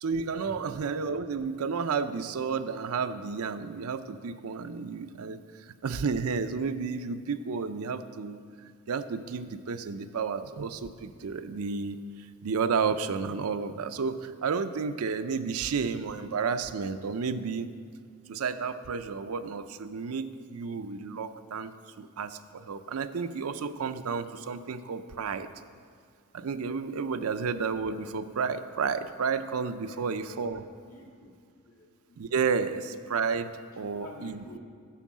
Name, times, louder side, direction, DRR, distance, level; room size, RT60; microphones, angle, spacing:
voice 1, 0.0-8.4 8.9-12.0 12.4-17.7 18.3-21.7 22.0-25.5 26.3-30.6 32.2-34.6, right 5 dB, 85° right, 11 dB, 0.5 m, -31 dB
voice 2, 29.8-30.1 30.5-30.6 30.9-31.4 31.6-32.2 33.9-34.6, left 2 dB, 80° left, -2 dB, 1.8 m, -49 dB
11.5 x 4.6 x 7.3 m, 2.2 s
head